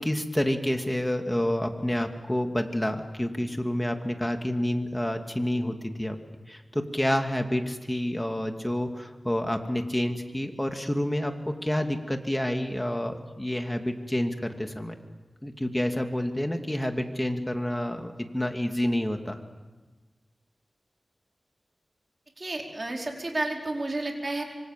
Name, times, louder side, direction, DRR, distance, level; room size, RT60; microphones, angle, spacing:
voice 1, 0.0-6.2 6.5-14.9 15.4-19.4, left 1 dB, 10° left, 5 dB, 2.5 m, -28 dB
voice 2, 22.4-24.4, right 2 dB, 45° right, 1 dB, 5.0 m, -31 dB
25.5 x 24.5 x 7.6 m, 1.2 s
wide cardioid pair, 60°, 0 cm